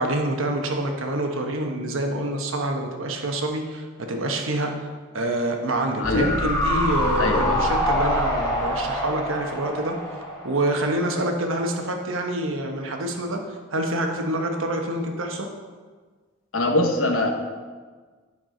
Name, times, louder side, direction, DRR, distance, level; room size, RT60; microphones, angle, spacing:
voice 1, 0.0-4.9 5.1-9.9 10.4-15.5, right 1 dB, 80° right, 3 dB, 1.0 m, -26 dB
voice 2, 6.0-6.3 7.2-7.6 16.5-17.3, left 2 dB, 85° left, 4 dB, 1.0 m, -22 dB
sound 1, 6.0-11.3 11.6-11.7, left 1 dB, 20° left, 1.2 m, -25 dB
9.3 x 6.0 x 3.8 m, 1.5 s
head